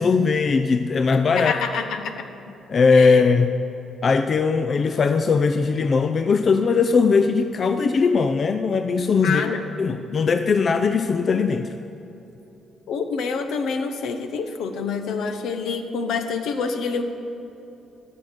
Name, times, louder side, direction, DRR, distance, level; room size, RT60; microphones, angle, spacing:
voice 1, 0.0-1.5 2.7-3.6 4.0-9.4 9.8-11.7, left 5 dB, 45° left, 8 dB, 0.4 m, -19 dB
voice 2, 1.3-2.3 2.9-3.2 9.2-9.6 12.9-17.0, left 5 dB, 80° left, 7 dB, 0.9 m, -27 dB
14.0 x 6.3 x 7.4 m, 2.9 s
cardioid pair, 90°, 0 cm